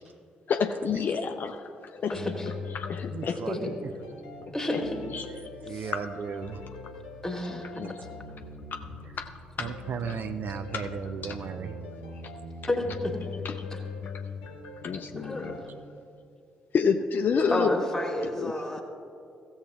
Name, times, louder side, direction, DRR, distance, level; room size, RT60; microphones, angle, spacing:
voice 1, 0.5-2.2 2.7-3.4 4.7-4.8 5.1-5.3 5.9-6.0 7.5-8.0 8.7-8.8 9.2-9.3 9.6-9.7 10.7-10.8 11.2-11.4 13.4-13.5 14.8-15.6 16.7-17.9 18.4-18.5, left 6 dB, 45° left, 6 dB, 0.5 m, -29 dB
sound 1, 2.1-15.7, left 4 dB, 75° left, 1.0 m, -41 dB
voice 2, 2.1-2.5 3.5-3.6 4.5-5.0 5.7-5.9 7.2-7.8 12.7-13.1 13.7-13.8 15.2-15.5 17.5-18.8, left 1 dB, 10° left, 3 dB, 1.8 m, -30 dB
voice 3, 3.1-3.9 5.6-6.6 9.6-11.8, right 6 dB, 45° right, 10 dB, 0.5 m, -35 dB
16.0 x 7.1 x 3.5 m, 2.5 s
figure-of-eight pair, 40°, 4 cm